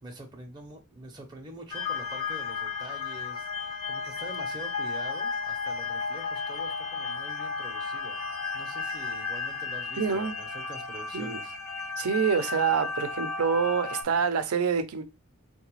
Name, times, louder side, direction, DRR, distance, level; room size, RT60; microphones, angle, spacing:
voice 1, 0.0-8.2 8.5-11.5, right 1 dB, 20° right, 0.6 m, -45 dB
sound 1, 1.7-14.0, left 4 dB, 85° left, 0.8 m, -34 dB
voice 2, 10.0-10.3 11.1-11.4 12.0-15.0, right 6 dB, 80° right, 0.5 m, -26 dB
3.8 x 2.2 x 3.0 m
head